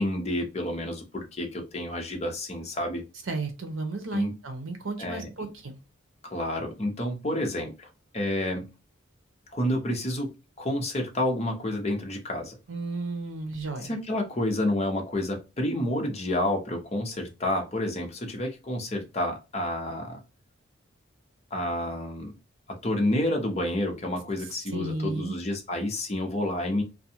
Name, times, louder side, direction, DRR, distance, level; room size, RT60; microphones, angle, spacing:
voice 1, 0.0-3.0 4.1-4.3 5.0-5.5 6.2-7.9 8.1-8.7 9.5-10.3 10.6-12.6 13.8-20.2 21.5-22.3 22.7-26.8, left 1 dB, 30° left, 0.7 m, -29 dB
voice 2, 3.3-5.8 12.7-14.0 24.7-25.3, right 3 dB, 80° right, 0.8 m, -33 dB
2.6 x 2.2 x 2.7 m
head